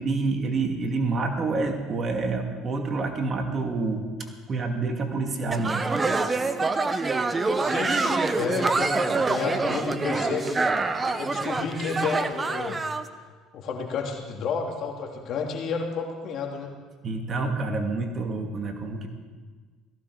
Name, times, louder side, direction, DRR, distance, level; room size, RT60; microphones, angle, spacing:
voice 1, 0.0-5.8 17.0-19.1, right 3 dB, 40° right, 4 dB, 2.3 m, -28 dB
sound 1, 5.5-13.0, right 3 dB, 25° right, 1.0 m, -26 dB
voice 2, 7.6-10.7 11.2-12.9 13.5-16.7, left 5 dB, 60° left, 1 dB, 3.0 m, -31 dB
17.5 x 15.5 x 4.9 m, 1.4 s
supercardioid pair, 85°, 0 cm